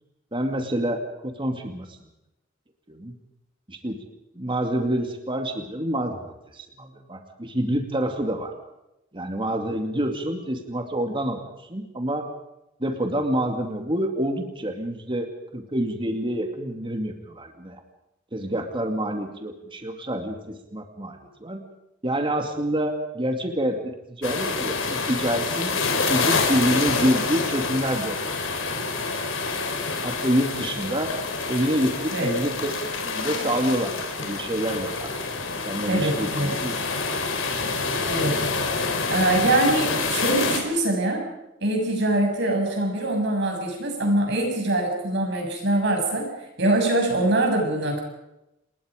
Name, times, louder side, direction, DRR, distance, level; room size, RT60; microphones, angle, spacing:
voice 1, 0.3-2.0 2.9-3.1 3.7-4.0 4.3-8.5 9.1-11.4 11.7-12.3 12.8-17.8 18.3-21.6 22.0-25.7 26.1-28.2 30.0-31.2 31.5-32.7 33.0-35.4 35.6-37.0, right 1 dB, 25° right, 4 dB, 2.4 m, -27 dB
sound 1, 24.2-40.6, left 4 dB, 90° left, 4.3 m, -27 dB
voice 2, 35.9-36.5 38.1-38.4 39.1-41.3 41.6-46.3 46.6-48.0, right 1 dB, 60° right, 2 dB, 7.1 m, -23 dB
29.0 x 21.0 x 5.1 m, 0.89 s
head